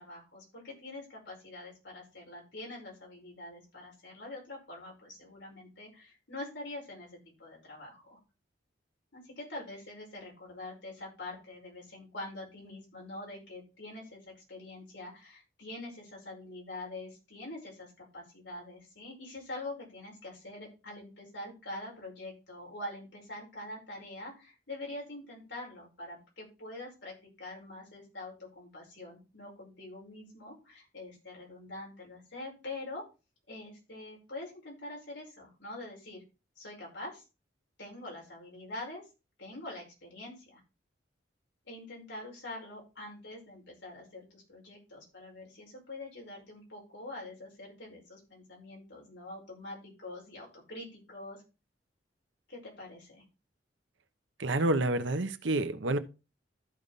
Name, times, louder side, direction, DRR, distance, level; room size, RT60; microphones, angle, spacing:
voice 1, 0.0-8.2 9.1-33.0 33.5-36.2 36.6-37.2 37.8-39.0 39.4-40.6 41.7-51.4 52.5-53.2, left 2 dB, 75° left, 5.4 m, -45 dB
voice 2, 54.4-56.0, right 2 dB, 85° right, 1.0 m, -28 dB
14.0 x 5.3 x 4.1 m
head